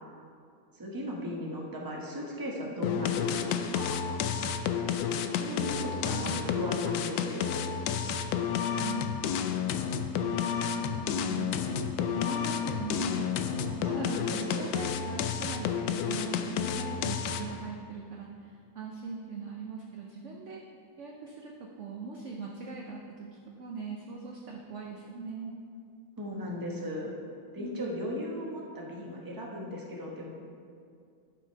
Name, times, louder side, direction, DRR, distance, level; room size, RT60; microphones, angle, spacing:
voice 1, 0.7-4.0 5.4-7.7 13.9-14.7 26.2-27.1 27.5-30.3, equal, 15° right, -2 dB, 1.0 m, -37 dB
sound 1, 2.8-17.6, left 8 dB, 75° left, 1.1 m, -31 dB
voice 2, 5.5-6.5 8.3-9.2 10.1-20.6 21.0-23.3 23.6-25.6 27.6-28.0, right 4 dB, 60° right, 0 dB, 0.8 m, -41 dB
11.0 x 6.3 x 4.6 m, 2.3 s
omnidirectional pair, 2.0 m